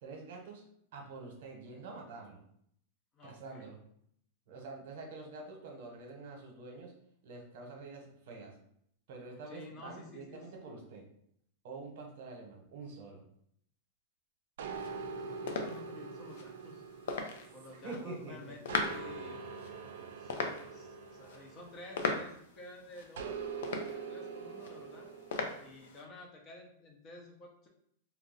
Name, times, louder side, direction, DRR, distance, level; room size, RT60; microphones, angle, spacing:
voice 1, 0.0-0.6 0.9-2.4 3.2-3.8 4.5-6.9 7.2-8.5 9.1-11.0 11.6-13.2 17.7-18.5, right 3 dB, 65° right, 1 dB, 0.9 m, -46 dB
voice 2, 3.1-3.7 9.5-10.4 15.2-16.8 17.5-19.4 19.8-25.1 25.6-27.7, left 2 dB, 30° left, 1 dB, 0.7 m, -52 dB
sound 1, 14.6-18.2 18.7-22.4 23.2-25.8, right 5 dB, 80° right, 0.4 m, -44 dB
sound 2, 14.7-26.0, left 4 dB, 75° left, 0.5 m, -41 dB
2.6 x 2.0 x 3.8 m, 0.69 s
supercardioid pair, 145°, 0 cm